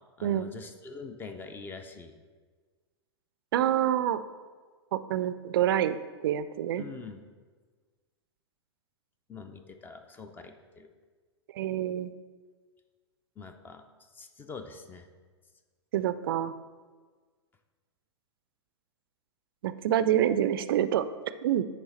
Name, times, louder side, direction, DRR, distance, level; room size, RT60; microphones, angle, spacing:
voice 1, 0.2-2.2 6.8-7.2 9.3-10.9 13.4-13.8 14.1-15.1, left 4 dB, 15° left, 7 dB, 0.4 m, -44 dB
voice 2, 3.5-4.2 4.9-6.8 11.5-12.1 15.9-16.5 19.6-21.1 21.4-21.6, right 11 dB, 55° right, 13 dB, 0.4 m, -27 dB
9.3 x 3.3 x 4.1 m, 1.5 s
figure-of-eight pair, 100°, 15 cm